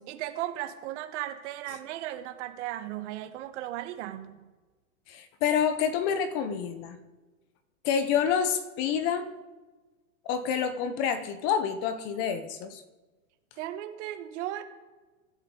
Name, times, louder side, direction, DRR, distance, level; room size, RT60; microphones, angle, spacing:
voice 1, 0.0-4.4 13.6-14.6, right 13 dB, 55° right, 8 dB, 1.4 m, -36 dB
voice 2, 5.1-7.0 7.8-9.3 10.2-12.8, left 7 dB, 40° left, 10 dB, 1.0 m, -28 dB
15.0 x 11.5 x 4.0 m, 1.2 s
hypercardioid pair, 135°, 43 cm